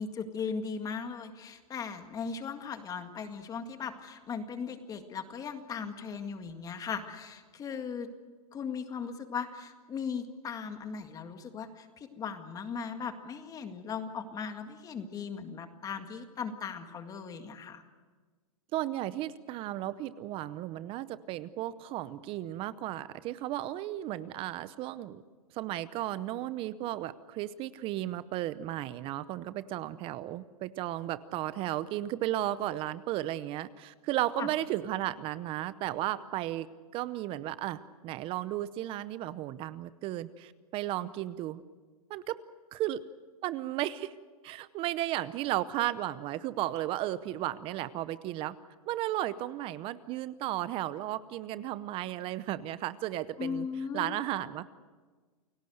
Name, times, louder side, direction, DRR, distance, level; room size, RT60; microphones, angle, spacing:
voice 1, 0.0-8.1 8.5-17.8 34.4-34.5 53.4-54.1, left 6 dB, 20° left, 7 dB, 2.0 m, -38 dB
voice 2, 18.7-25.2 25.5-36.7 36.9-41.6 42.1-42.4 42.7-43.0 43.4-44.1 44.4-48.6 48.9-53.7 53.9-54.7, right 14 dB, 30° right, 16 dB, 0.8 m, -34 dB
29.5 x 17.5 x 7.9 m, 1.4 s
hypercardioid pair, 140°, 19 cm